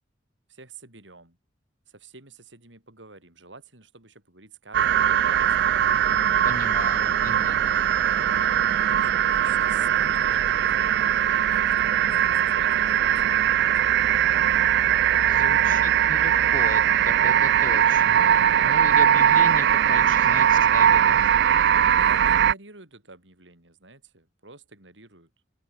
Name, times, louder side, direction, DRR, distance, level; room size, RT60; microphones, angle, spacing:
voice 1, 0.5-1.4 1.9-5.7 8.2-14.2 14.9-15.9 18.8-19.3 21.8-25.3, right 3 dB, 80° right, 6.6 m, -48 dB
sound 1, 4.7-22.5, right 9 dB, 65° right, 0.3 m, -20 dB
voice 2, 6.4-7.6 15.3-21.3, left 3 dB, 45° left, 2.0 m, -37 dB
open air
head